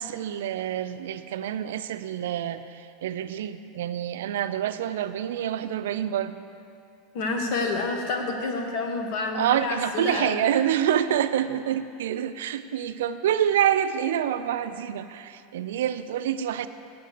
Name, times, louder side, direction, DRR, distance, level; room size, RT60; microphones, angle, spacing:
voice 1, 0.0-6.4 9.3-16.7, right 10 dB, 90° right, 11 dB, 0.4 m, -27 dB
voice 2, 7.1-10.4, left 3 dB, 55° left, 3 dB, 1.3 m, -28 dB
7.8 x 7.7 x 6.6 m, 2.5 s
supercardioid pair, 150°, 0 cm